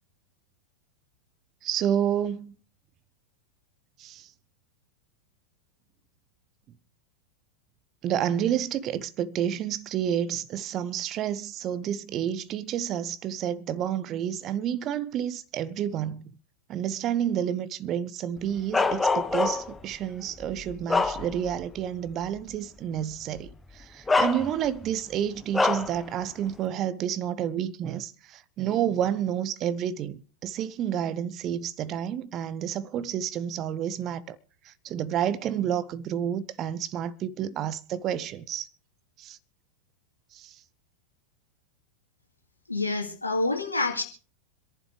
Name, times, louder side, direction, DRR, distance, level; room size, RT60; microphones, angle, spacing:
voice 1, 1.6-2.5 4.0-4.3 8.0-16.3 16.7-34.4 34.6-38.7 39.2-39.4 40.3-40.6, right 9 dB, 35° right, 0.9 m, -30 dB
Bark, 18.7-19.8 20.4-21.6 22.1-22.2 23.4-23.5 24.1-24.9 25.5-26.0, left 3 dB, 10° left, 0.9 m, -25 dB
voice 2, 42.7-44.0, left 2 dB, 85° left, 2.3 m, -27 dB
26.5 x 11.0 x 3.3 m
figure-of-eight pair, 90°, 0 cm